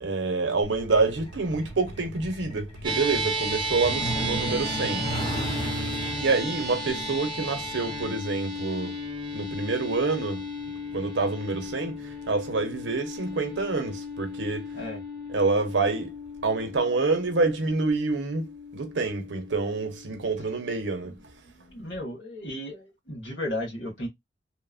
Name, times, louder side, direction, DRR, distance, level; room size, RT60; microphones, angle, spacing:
voice 1, 0.0-5.4 6.1-8.9 9.3-10.4 10.9-14.7 15.3-16.1 16.4-18.5 18.7-21.2, right 3 dB, 80° right, 0.7 m, -27 dB
Truck, 0.6-12.9 14.1-14.3 14.7-14.9 15.3-15.5 15.9-16.0 16.4-16.5, right 1 dB, 30° left, 0.8 m, -36 dB
sound 1, 2.8-21.4, equal, 25° right, 0.6 m, -35 dB
voice 2, 21.5-24.1, left 1 dB, 90° left, 1.5 m, -35 dB
2.9 x 2.1 x 2.4 m
head